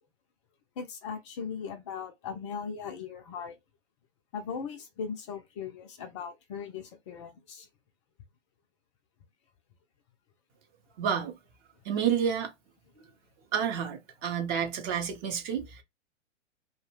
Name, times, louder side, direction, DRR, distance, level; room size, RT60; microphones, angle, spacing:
voice 1, 0.8-3.6 4.3-7.7, left 6 dB, 25° left, 0.4 m, -38 dB
voice 2, 11.0-11.4 11.8-12.5 13.5-15.8, right 8 dB, 25° right, 0.6 m, -29 dB
2.2 x 2.1 x 3.1 m
figure-of-eight pair, 105°, 36 cm